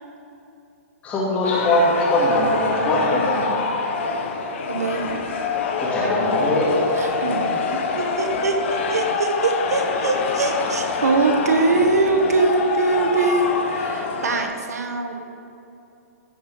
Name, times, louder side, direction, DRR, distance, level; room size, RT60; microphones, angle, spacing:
voice 1, 1.0-3.6 5.8-6.7, left 1 dB, 15° left, -5 dB, 2.6 m, -21 dB
sound 1, 1.4-14.4, left 4 dB, 50° left, 1.2 m, -25 dB
voice 2, 4.7-5.1 7.0-7.6 8.0-15.3, right 3 dB, 90° right, 5 dB, 1.4 m, -22 dB
15.0 x 5.4 x 5.6 m, 2.8 s
hypercardioid pair, 160°, 8 cm